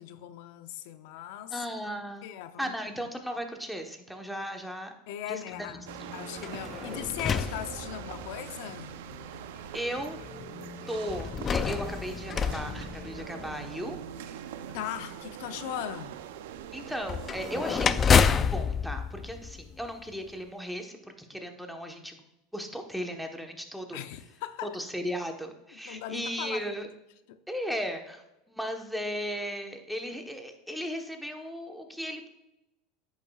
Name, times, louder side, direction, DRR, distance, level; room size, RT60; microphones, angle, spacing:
voice 1, 0.0-1.6 2.2-3.0 5.1-5.8 6.1-9.0 14.7-16.2 23.9-24.7 25.9-26.8 27.3-27.4, left 11 dB, 75° left, 0.6 m, -39 dB
voice 2, 1.5-2.3 2.6-4.9 5.3-5.4 5.7-6.1 9.3-9.4 9.7-10.2 10.9-14.0 16.7-22.2 22.5-24.0 24.6-26.9 27.5-32.3, equal, ahead, 1.1 m, -36 dB
sound 1, 5.5-15.2, left 2 dB, 50° left, 1.8 m, -47 dB
sound 2, 5.9-18.0, right 11 dB, 85° right, 0.5 m, -43 dB
sound 3, 6.4-8.4 9.1-9.2 11.1-13.7 17.0-20.1, left 7 dB, 25° left, 0.3 m, -28 dB
10.5 x 8.4 x 2.4 m
supercardioid pair, 130°, 0 cm